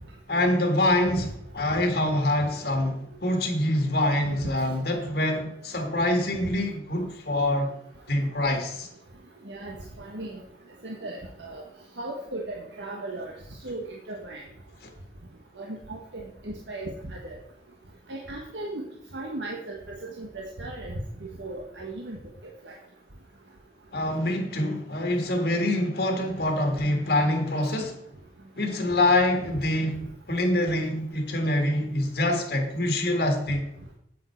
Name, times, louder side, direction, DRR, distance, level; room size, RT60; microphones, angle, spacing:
voice 1, 0.3-1.3 1.5-7.7 8.1-8.9 14.8-14.9 23.9-28.0 28.5-33.7, left 1 dB, 60° left, 1.8 m, -25 dB
voice 2, 9.5-10.4 10.8-11.6 12.0-13.3 13.6-14.4 15.6-17.4 18.1-18.8 19.1-19.8 20.2-21.0 21.4-22.2 22.6-22.7, right 2 dB, 85° right, 1.4 m, -36 dB
8.7 x 8.7 x 4.5 m
head